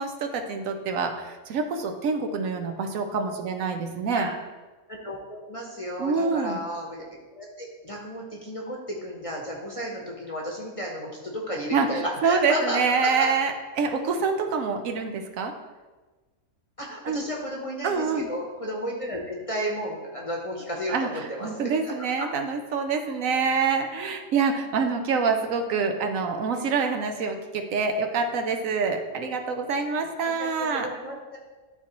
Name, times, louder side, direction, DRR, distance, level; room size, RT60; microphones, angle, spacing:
voice 1, 0.0-4.3 6.0-6.6 11.7-15.5 17.0-17.2 17.8-18.3 20.9-30.9, right 5 dB, 75° right, 5 dB, 1.1 m, -26 dB
voice 2, 4.9-7.0 7.3-13.3 16.8-21.9 30.2-31.4, equal, 30° left, -2 dB, 0.8 m, -33 dB
11.0 x 4.2 x 3.0 m, 1.3 s
omnidirectional pair, 1.5 m